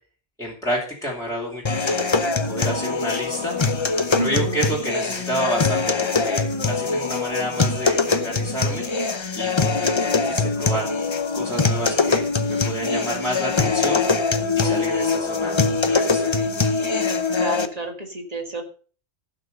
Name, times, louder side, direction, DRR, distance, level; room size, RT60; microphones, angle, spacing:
voice 1, 0.4-2.1 2.4-3.5 4.2-8.8 9.4-10.9 11.3-14.0 14.5-15.6 15.8-16.3, equal, 5° left, -5 dB, 2.9 m, -29 dB
sound 1, 1.7-17.7, left 4 dB, 30° left, 0.7 m, -23 dB
voice 2, 4.1-4.6 17.4-18.6, right 1 dB, 35° right, 3 dB, 2.2 m, -29 dB
15.0 x 6.2 x 5.4 m, 0.40 s
omnidirectional pair, 1.2 m